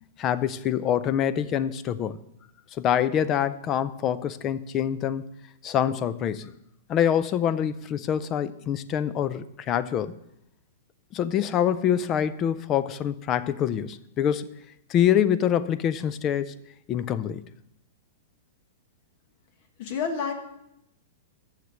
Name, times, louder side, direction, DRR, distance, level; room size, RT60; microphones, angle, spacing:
voice 1, 0.2-2.2 2.8-5.3 5.6-6.5 6.9-10.2 11.1-14.5 14.9-16.5 16.9-17.4, left 9 dB, 30° left, 15 dB, 0.4 m, -25 dB
voice 2, 19.8-20.3, left 6 dB, 50° left, 5 dB, 1.3 m, -29 dB
6.6 x 6.6 x 7.6 m, 0.80 s
hypercardioid pair, 140°, 0 cm